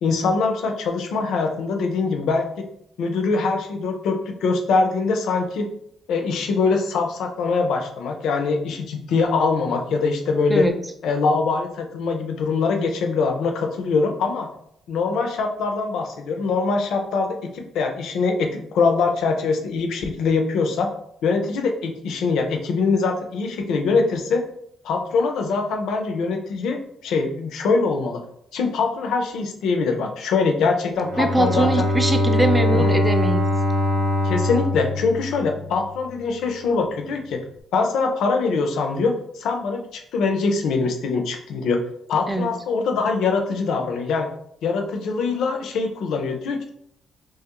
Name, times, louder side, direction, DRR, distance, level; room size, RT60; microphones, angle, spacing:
voice 1, 0.0-2.6 3.0-5.7 6.1-10.6 11.0-14.5 14.9-20.9 21.2-24.4 24.8-28.2 28.5-31.9 32.7-32.9 34.2-37.4 37.7-41.8 42.1-44.3 44.6-46.7, left 4 dB, 80° left, 4 dB, 0.4 m, -23 dB
Bowed string instrument, 31.0-36.0, left 1 dB, 90° right, 0.9 m, -22 dB
voice 2, 31.2-33.4 42.3-42.5, right 1 dB, 10° right, 5 dB, 0.4 m, -22 dB
2.8 x 2.4 x 2.9 m, 0.72 s
cardioid pair, 90°, 0 cm